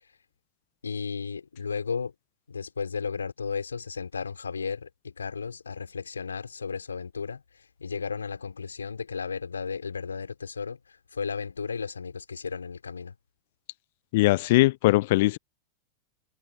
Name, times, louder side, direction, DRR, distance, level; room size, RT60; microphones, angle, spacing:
voice 1, 0.8-2.1 2.5-13.1, left 5 dB, 75° left, 4.7 m, -34 dB
voice 2, 14.1-15.4, left 19 dB, 50° left, 0.9 m, -21 dB
figure-of-eight pair, 90°, 0 cm